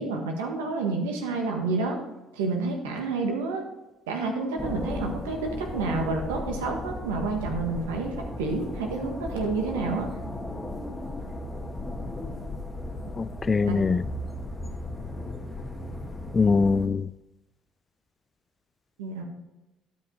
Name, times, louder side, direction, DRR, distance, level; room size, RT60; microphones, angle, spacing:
voice 1, 0.0-2.0 2.4-3.6 4.1-8.1 8.4-10.1 13.7-13.8 19.0-19.2, right 3 dB, 85° right, 1.5 m, -29 dB
sound 1, 4.6-16.9, left 2 dB, 15° left, 1.6 m, -36 dB
voice 2, 13.2-14.1 16.3-17.1, left 4 dB, 30° left, 0.3 m, -23 dB
12.0 x 5.3 x 4.5 m
hypercardioid pair, 60°, 0 cm